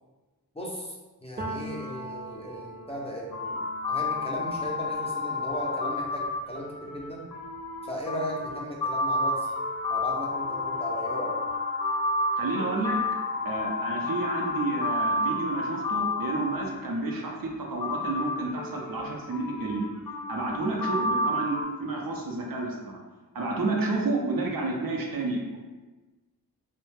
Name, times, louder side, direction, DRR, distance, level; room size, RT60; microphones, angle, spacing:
voice 1, 0.5-3.6 3.9-7.3 7.8-9.5 9.9-11.4, equal, 15° left, -3 dB, 0.5 m, -36 dB
Piano, 1.4-9.0 9.3-10.9, right 1 dB, 25° right, 0.6 m, -44 dB
sound 1, 3.3-17.1 17.8-21.6, left 2 dB, 65° left, 0.5 m, -30 dB
voice 2, 12.4-13.0 13.4-19.9 20.3-22.8 23.3-25.4, right 3 dB, 65° right, -1 dB, 0.6 m, -30 dB
2.4 x 2.1 x 3.3 m, 1.2 s
cardioid pair, 60°, 37 cm